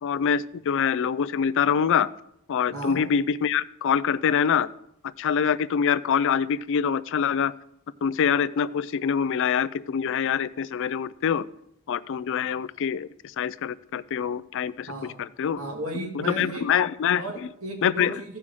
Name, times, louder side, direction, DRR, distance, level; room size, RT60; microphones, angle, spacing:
voice 1, 0.0-2.1 2.5-4.7 5.2-7.5 8.0-11.4 11.9-13.1 13.4-14.9 15.2-15.6 16.3-17.2 17.8-18.1, left 7 dB, 60° left, 16 dB, 0.4 m, -25 dB
voice 2, 2.7-3.1 14.9-15.2 15.6-16.6 17.1-18.4, right 1 dB, 80° right, 1 dB, 2.5 m, -34 dB
15.0 x 5.6 x 4.8 m, 0.77 s
head